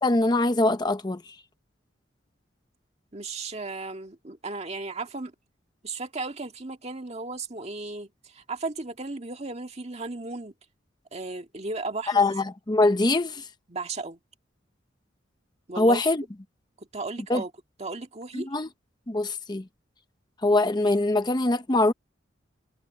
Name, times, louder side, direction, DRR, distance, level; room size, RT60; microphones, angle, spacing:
voice 1, 0.0-1.3 12.1-13.4 15.8-16.2 17.3-17.4 18.3-18.7 19.1-19.6 20.4-21.9, left 2 dB, 20° left, 0.7 m, -23 dB
voice 2, 3.1-5.3 5.8-10.5 11.1-12.3 13.7-14.2 15.7-16.0 16.8-17.5 17.8-18.5, right 3 dB, 35° right, 1.8 m, -35 dB
head